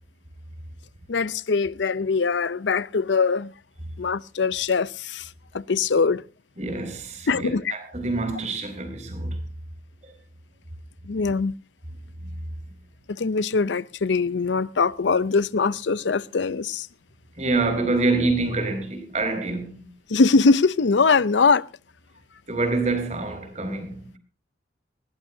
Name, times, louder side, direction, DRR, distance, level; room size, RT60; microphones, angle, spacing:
voice 1, 1.1-3.5 4.0-5.2 5.5-6.2 7.3-7.7 11.1-11.5 13.2-16.9 20.1-21.6, left 4 dB, 90° left, 0.6 m, -22 dB
voice 2, 6.6-9.4 10.0-10.1 12.2-12.3 17.4-19.9 22.5-24.2, right 3 dB, 40° right, 4.4 m, -26 dB
20.0 x 18.0 x 2.7 m
head